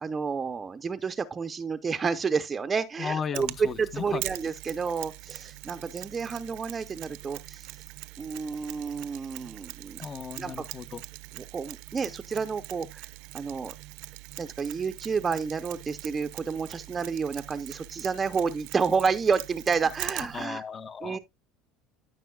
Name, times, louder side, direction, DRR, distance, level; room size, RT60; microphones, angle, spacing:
voice 1, 0.0-7.7 8.2-10.0 10.4-10.7 11.3-13.1 13.3-13.7 14.4-20.6 21.0-21.2, right 5 dB, 25° right, 0.6 m, -30 dB
voice 2, 3.0-4.2 10.0-11.0 20.3-21.2, left 6 dB, 30° left, 0.7 m, -35 dB
Mechanisms, 3.3-20.4, right 20 dB, 75° right, 0.7 m, -42 dB
14.0 x 6.1 x 2.3 m
supercardioid pair, 130°, 0 cm